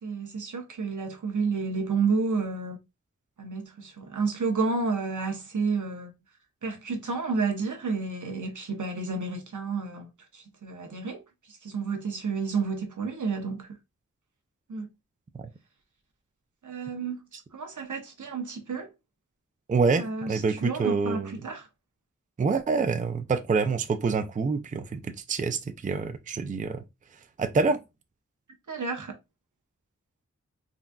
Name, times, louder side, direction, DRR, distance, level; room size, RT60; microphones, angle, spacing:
voice 1, 0.0-2.8 3.4-6.1 6.6-11.2 11.5-13.8 14.7-14.9 16.6-17.3 17.5-18.9 19.9-21.7 28.7-29.2, right 4 dB, 80° right, 0.9 m, -31 dB
voice 2, 19.7-21.3 22.4-26.8 27.4-27.8, right 4 dB, 25° right, 0.4 m, -26 dB
3.8 x 2.5 x 2.3 m
wide cardioid pair, 70°, 30 cm